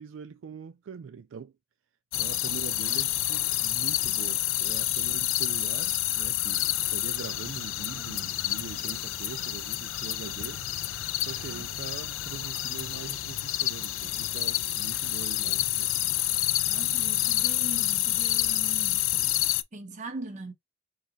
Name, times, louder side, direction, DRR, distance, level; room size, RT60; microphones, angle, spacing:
voice 1, 0.0-1.5 2.2-10.6 11.2-15.9, right 6 dB, 65° right, 0.3 m, -42 dB
sound 1, 2.1-19.6, left 14 dB, 65° left, 0.4 m, -28 dB
voice 2, 16.7-19.1 19.7-20.5, right 2 dB, 35° right, 1.1 m, -41 dB
4.6 x 2.3 x 4.0 m
head